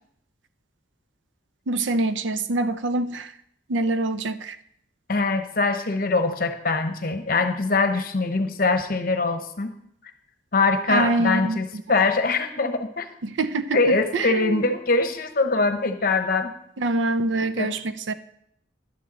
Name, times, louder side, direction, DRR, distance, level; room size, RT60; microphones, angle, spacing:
voice 1, 1.7-3.3 3.7-4.6 10.9-11.6 13.2-14.6 16.8-18.1, right 2 dB, 80° right, 12 dB, 0.6 m, -25 dB
voice 2, 5.1-9.7 10.5-13.1 13.7-16.5 17.6-17.7, left 3 dB, 50° left, 8 dB, 0.9 m, -23 dB
11.5 x 9.3 x 4.1 m, 0.72 s
head